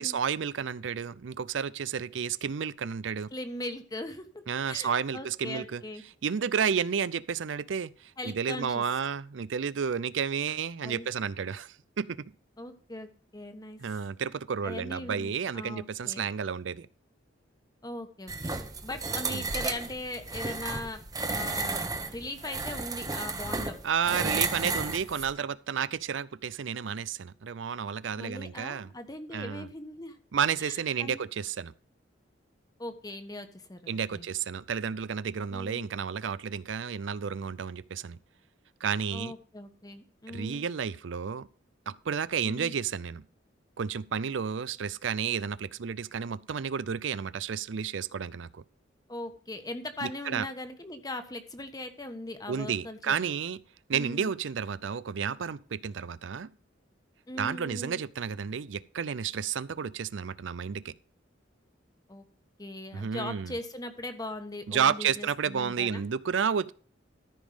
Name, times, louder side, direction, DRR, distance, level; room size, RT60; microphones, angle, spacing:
voice 1, 0.0-3.3 4.5-5.8 6.2-12.2 13.8-16.9 19.3-19.5 23.8-28.9 29.3-29.7 30.3-31.7 33.9-38.2 38.8-39.3 40.3-41.5 41.9-43.2 43.8-48.6 50.0-50.5 52.5-53.6 53.9-56.5 57.4-60.9 62.9-63.6 64.7-66.7, right 7 dB, 80° right, 0.5 m, -31 dB
voice 2, 3.3-6.0 8.2-8.8 10.8-11.1 12.6-13.8 14.6-16.3 17.8-23.8 24.1-24.7 28.2-30.2 30.6-31.2 32.8-34.2 35.5-35.9 39.1-40.6 42.4-42.7 49.1-53.3 53.9-54.3 57.3-58.0 62.1-62.2 62.6-66.0, left 1 dB, 20° left, 1.3 m, -40 dB
sound 1, 18.3-25.3, right 3 dB, 20° right, 1.1 m, -33 dB
14.0 x 5.3 x 5.1 m
head